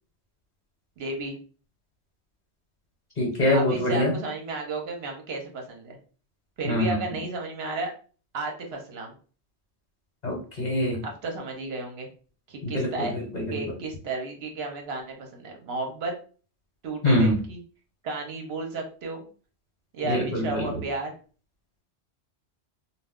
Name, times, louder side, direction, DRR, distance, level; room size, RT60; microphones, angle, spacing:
voice 1, 1.0-1.4 3.5-6.0 6.6-7.9 8.3-9.1 11.0-12.1 12.5-13.1 13.5-16.1 16.8-17.6 18.0-19.2 19.9-21.1, right 3 dB, 70° right, 2 dB, 0.9 m, -33 dB
voice 2, 3.2-4.1 6.6-7.0 10.2-11.0 12.6-13.6 17.0-17.4 20.0-20.8, left 1 dB, 40° left, -2 dB, 1.1 m, -24 dB
2.3 x 2.2 x 3.5 m, 0.40 s
omnidirectional pair, 1.1 m